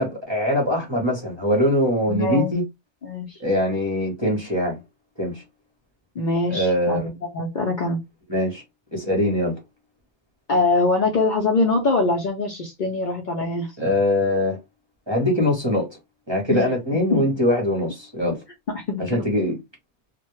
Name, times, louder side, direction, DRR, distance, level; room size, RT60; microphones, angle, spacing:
voice 1, 0.0-2.6 3.4-4.8 5.2-5.4 6.5-7.1 8.3-8.6 8.9-9.6 13.8-14.6 15.1-15.9 16.3-18.4 19.0-19.6, left 1 dB, 30° right, 0.6 m, -22 dB
voice 2, 2.1-2.5 3.0-3.4 6.2-8.0 10.5-13.7 16.5-16.7 17.1-17.2 18.7-19.2, left 3 dB, 55° left, 0.6 m, -23 dB
2.1 x 2.0 x 3.0 m
omnidirectional pair, 1.2 m